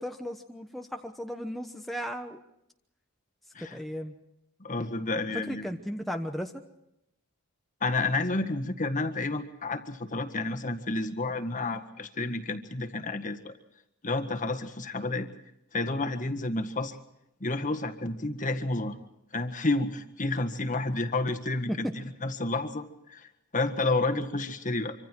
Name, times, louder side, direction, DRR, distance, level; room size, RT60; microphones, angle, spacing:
voice 1, 0.0-2.4 3.7-4.1 5.3-6.6 21.7-21.9, equal, ahead, 3 dB, 1.1 m, -35 dB
voice 2, 4.6-5.6 7.8-13.5 14.0-15.3 15.7-17.0 17.4-18.9 19.3-24.9, left 2 dB, 35° left, 7 dB, 1.7 m, -30 dB
26.0 x 25.5 x 4.6 m, 0.81 s
head